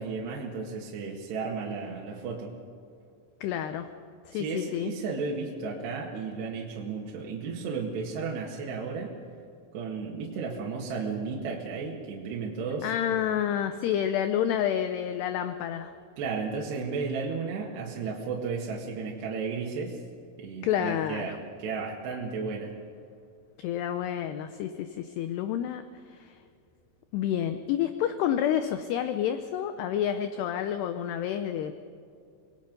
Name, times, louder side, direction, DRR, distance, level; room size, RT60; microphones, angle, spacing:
voice 1, 0.0-2.5 4.3-9.1 9.7-13.2 16.2-20.0 20.4-22.7, right 4 dB, 65° right, -2 dB, 3.7 m, -34 dB
voice 2, 3.4-3.9 4.3-4.9 12.8-15.9 20.6-21.4 23.6-25.8 26.1-26.4 27.1-31.7, left 10 dB, 80° left, 9 dB, 2.5 m, -29 dB
27.0 x 20.0 x 5.3 m, 2.5 s
omnidirectional pair, 5.6 m